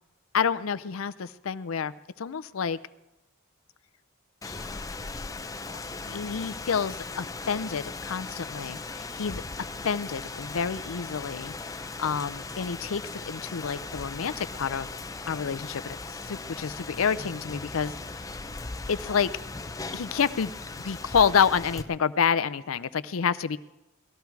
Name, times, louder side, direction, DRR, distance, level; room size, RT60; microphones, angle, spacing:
voice 1, 0.3-1.9 2.2-2.8 4.4-4.9 5.7-5.8 6.1-14.9 15.3-16.0 16.2-17.9 18.9-19.3 19.9-20.5 20.8-23.6, left 6 dB, 80° left, 15 dB, 0.5 m, -28 dB
Rain, 4.4-21.8, left 3 dB, 15° left, 0.6 m, -38 dB
19.0 x 14.0 x 4.7 m, 0.95 s
head